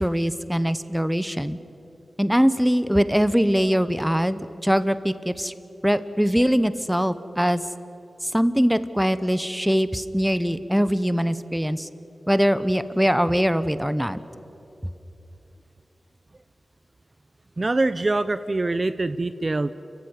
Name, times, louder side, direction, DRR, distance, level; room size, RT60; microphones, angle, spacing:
voice 1, 0.0-1.6 2.2-5.5 5.8-7.6 8.2-11.9 12.3-14.2, equal, 5° right, 13 dB, 0.9 m, -22 dB
voice 2, 17.6-19.7, right 2 dB, 35° right, 13 dB, 0.6 m, -24 dB
29.5 x 15.5 x 9.7 m, 2.9 s
wide cardioid pair, 80°, 0 cm